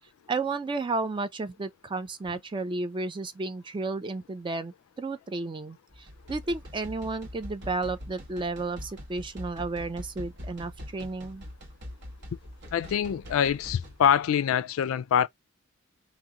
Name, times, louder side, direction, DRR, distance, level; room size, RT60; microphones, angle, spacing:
voice 1, 0.3-11.4, right 3 dB, 25° right, 0.3 m, -32 dB
sound 1, 5.9-14.1, left 1 dB, 55° right, 0.9 m, -43 dB
voice 2, 12.7-15.3, left 9 dB, 70° left, 0.3 m, -24 dB
2.8 x 2.1 x 3.5 m
head